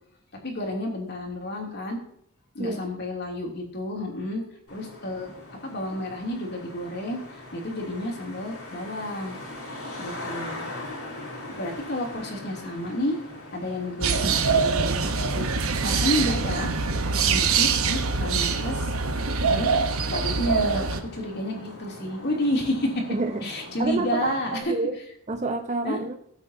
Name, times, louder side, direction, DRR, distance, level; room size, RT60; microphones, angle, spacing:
voice 1, 0.4-2.0 2.5-4.4 4.7-5.3 5.6-9.4 10.0-10.7 11.5-13.2 13.5-16.7 17.3-18.9 19.5-19.7 20.1-23.1 23.4-24.7 25.8-26.0, left 1 dB, 50° left, 0 dB, 3.0 m, -30 dB
Traffic noise roadway noise, 4.7-24.6, left 1 dB, 85° left, 3.7 m, -42 dB
sound 1, 14.0-21.0, right 5 dB, 70° right, 1.1 m, -24 dB
voice 2, 23.1-23.4 23.8-24.9 25.3-26.1, right 2 dB, 35° right, 6 dB, 0.9 m, -28 dB
17.0 x 8.0 x 2.8 m, 0.69 s
head